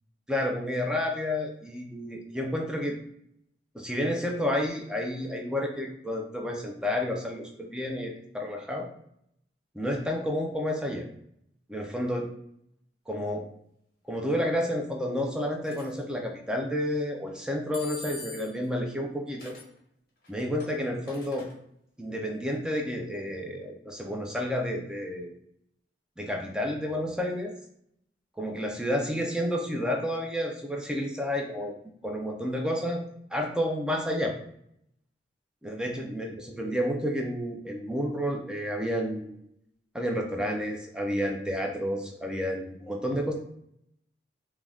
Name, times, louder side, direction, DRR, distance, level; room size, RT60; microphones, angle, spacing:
voice 1, 0.3-3.0 3.7-8.9 9.7-11.1 11.7-12.3 13.1-13.5 14.1-19.5 20.3-21.5 22.0-25.3 26.2-27.5 28.4-31.7 32.0-33.0 33.3-34.3 35.6-39.3 39.9-43.3, equal, 5° right, 1 dB, 0.3 m, -30 dB
sound 1, 15.6-15.9 17.7-18.7 19.4-19.7 20.2-21.5, left 3 dB, 55° left, 0.8 m, -44 dB
2.4 x 2.2 x 3.3 m, 0.74 s
head